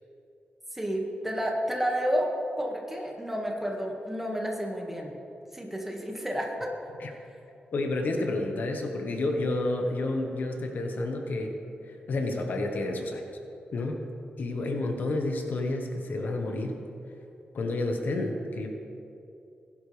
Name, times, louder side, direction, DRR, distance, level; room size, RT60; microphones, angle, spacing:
voice 1, 0.7-5.2 5.5-6.7, equal, 10° right, 0 dB, 1.9 m, -30 dB
voice 2, 7.7-11.5 11.8-13.2 13.7-14.0 14.4-16.8 17.5-18.7, left 2 dB, 65° left, 3 dB, 1.3 m, -30 dB
21.0 x 11.0 x 3.5 m, 2.8 s
wide cardioid pair, 115°, 3 cm